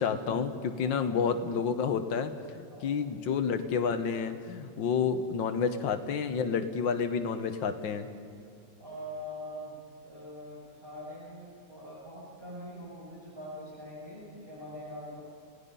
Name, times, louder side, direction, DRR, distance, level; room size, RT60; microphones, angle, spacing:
voice 1, 0.0-8.1, left 6 dB, 90° left, 8 dB, 1.8 m, -30 dB
voice 2, 0.8-1.1 2.7-2.9 8.8-9.7 10.0-15.2, equal, 30° right, -8 dB, 6.3 m, -43 dB
29.5 x 18.0 x 5.5 m, 2.5 s
omnidirectional pair, 2.0 m